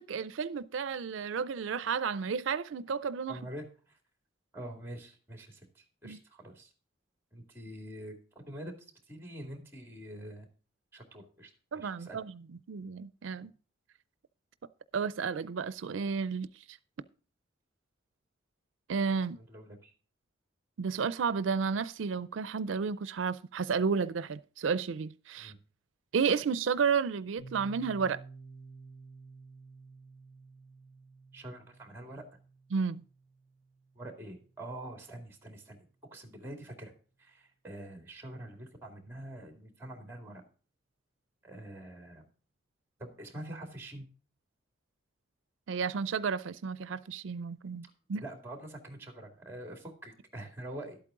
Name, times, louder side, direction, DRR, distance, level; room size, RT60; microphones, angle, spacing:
voice 1, 0.0-3.4 6.0-6.2 11.7-12.3 12.7-13.5 14.9-16.5 18.9-19.4 20.8-25.5 26.1-28.2 32.7-33.0 45.7-48.2, right 5 dB, 85° right, 0.4 m, -32 dB
voice 2, 3.3-4.0 4.5-6.7 7.3-8.7 9.1-10.5 10.9-12.2 19.3-19.9 25.4-25.6 31.3-32.2 34.0-35.9 36.1-36.9 37.2-40.4 41.4-42.3 43.0-44.1 48.2-51.0, right 1 dB, 15° right, 2.3 m, -45 dB
Piano, 27.4-34.8, right 4 dB, 75° left, 6.3 m, -52 dB
12.0 x 8.5 x 3.7 m
head